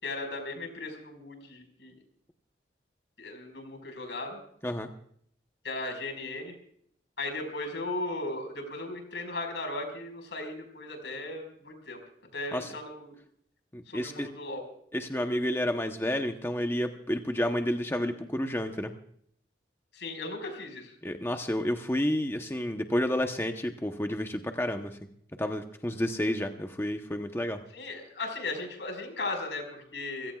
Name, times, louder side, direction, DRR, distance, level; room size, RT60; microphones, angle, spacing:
voice 1, 0.0-1.9 3.2-4.4 5.6-6.5 7.2-12.0 12.3-13.2 13.9-14.6 19.9-20.9 27.7-30.3, left 2 dB, 85° left, 4 dB, 5.0 m, -37 dB
voice 2, 13.7-14.3 14.9-18.9 21.0-25.0 25.4-27.6, left 1 dB, 15° left, 5 dB, 0.9 m, -30 dB
28.0 x 16.5 x 2.4 m, 0.65 s
head